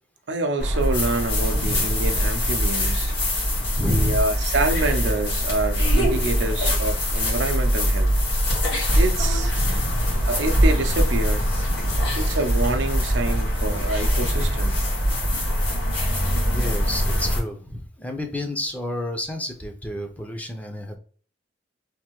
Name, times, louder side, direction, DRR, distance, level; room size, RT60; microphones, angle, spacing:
voice 1, 0.3-3.1 3.9-8.1 9.0-9.5 10.3-11.5 12.1-14.7, right 2 dB, 85° right, 0.6 m, -27 dB
sound 1, 0.6-17.4, equal, 80° left, 1.7 m, -22 dB
voice 2, 1.5-1.9 3.7-4.3 6.0-6.2 9.6-10.3 11.8-12.2 14.2-14.7 16.5-21.0, left 1 dB, 10° left, 0.6 m, -31 dB
3.4 x 2.6 x 2.9 m
head